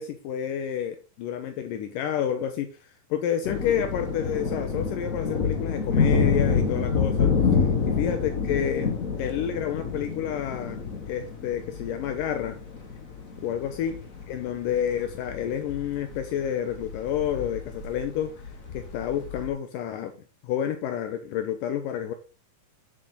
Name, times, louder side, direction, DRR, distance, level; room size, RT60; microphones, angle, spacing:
voice 1, 0.0-7.3 7.8-10.8 11.1-12.6 13.4-14.0 14.3-18.3 18.7-20.1 20.4-22.1, left 9 dB, 80° left, 6 dB, 2.5 m, -29 dB
sound 1, 3.4-19.5, left 5 dB, 40° left, 1.1 m, -28 dB
10.0 x 7.3 x 3.9 m, 0.34 s
omnidirectional pair, 3.9 m